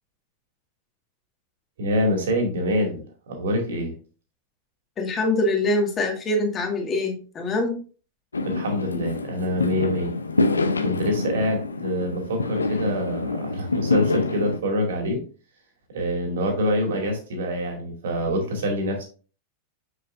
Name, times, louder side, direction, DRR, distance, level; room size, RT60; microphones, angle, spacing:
voice 1, 1.8-4.0 8.4-10.1 10.8-15.2 15.9-19.1, equal, 60° right, 2 dB, 2.4 m, -25 dB
voice 2, 5.0-7.8, left 2 dB, 25° left, 2 dB, 1.9 m, -24 dB
Fireworks, 8.3-14.6, left 2 dB, 75° left, 0.6 m, -26 dB
7.2 x 6.6 x 2.6 m, 0.37 s
figure-of-eight pair, 90°, 0 cm